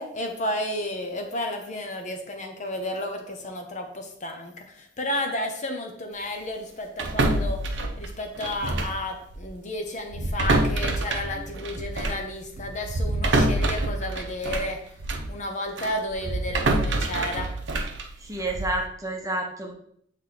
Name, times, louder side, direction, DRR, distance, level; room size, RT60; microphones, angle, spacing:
voice 1, 0.0-14.8 15.3-17.5, left 1 dB, 40° left, 3 dB, 0.8 m, -32 dB
sound 1, 7.0-9.0 9.3-9.5 10.1-15.3 15.8-18.8, right 2 dB, 70° right, 0.7 m, -26 dB
voice 2, 18.2-19.7, right 1 dB, 20° right, 1 dB, 0.8 m, -30 dB
7.7 x 3.2 x 3.9 m, 0.68 s
head